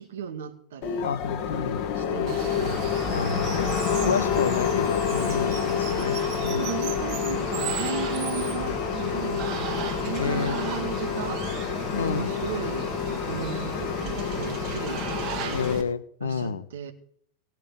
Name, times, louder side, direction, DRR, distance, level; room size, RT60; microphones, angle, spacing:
voice 1, 0.0-1.1 1.9-3.1 3.9-4.4 5.2-5.7 6.5-11.5 12.1-15.7 16.2-16.9, right 9 dB, 60° right, 1.9 m, -36 dB
sound 1, 0.8-15.8, left 7 dB, 40° left, 1.6 m, -28 dB
voice 2, 1.0-1.9 2.6-2.8 3.1-3.7 4.1-6.8 10.2-10.6 11.9-12.4 15.5-16.6, left 6 dB, 70° left, 1.0 m, -30 dB
Water, 2.3-15.8, right 8 dB, 40° right, 2.9 m, -36 dB
18.0 x 5.9 x 9.1 m
figure-of-eight pair, 90°, 0 cm